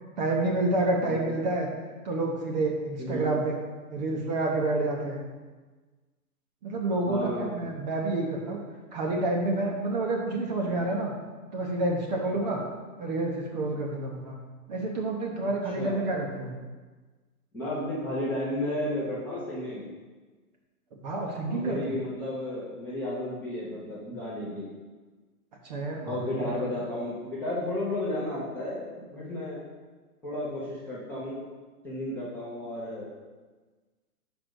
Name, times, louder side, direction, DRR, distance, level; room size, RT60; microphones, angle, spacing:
voice 1, 0.2-1.7 2.0-3.6 3.9-5.2 6.6-8.6 8.9-11.1 11.5-12.6 13.0-14.3 14.7-16.5 20.9-22.0 25.6-26.6, right 2 dB, 30° right, 0 dB, 0.8 m, -29 dB
voice 2, 1.0-1.4 3.0-3.3 7.0-7.5 12.3-12.6 15.7-16.0 17.5-19.9 21.5-24.7 26.1-29.6 30.2-31.4 31.8-33.1, left 1 dB, 5° left, -10 dB, 0.7 m, -33 dB
5.3 x 5.0 x 6.1 m, 1.3 s
hypercardioid pair, 155°, 45 cm